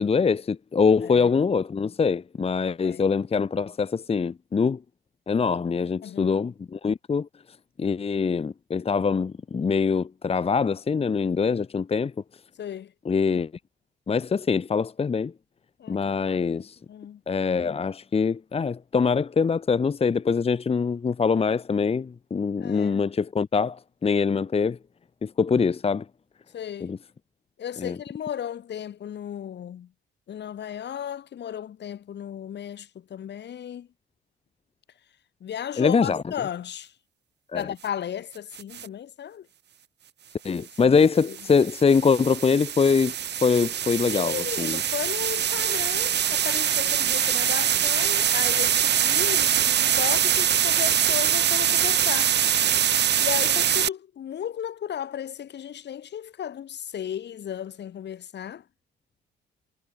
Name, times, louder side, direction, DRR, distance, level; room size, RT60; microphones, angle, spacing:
voice 1, 0.0-4.8 5.3-7.3 7.8-12.1 13.0-13.5 14.1-15.3 15.9-16.8 17.3-24.8 25.2-26.0 26.8-27.0 27.8-28.0 35.8-36.2 37.5-37.7 40.4-43.1 43.4-44.8, left 5 dB, 30° left, 1.0 m, -23 dB
voice 2, 6.0-6.4 12.6-12.9 15.8-16.4 16.9-17.2 22.6-23.0 26.5-26.9 27.6-29.9 30.3-33.9 35.4-36.9 37.5-39.5 40.6-41.0 41.3-41.4 44.1-52.4 53.2-58.6, left 9 dB, 60° left, 2.6 m, -35 dB
sound 1, 38.5-38.9 41.0-53.9, right 9 dB, 60° right, 1.8 m, -23 dB
cardioid pair, 90°, 20 cm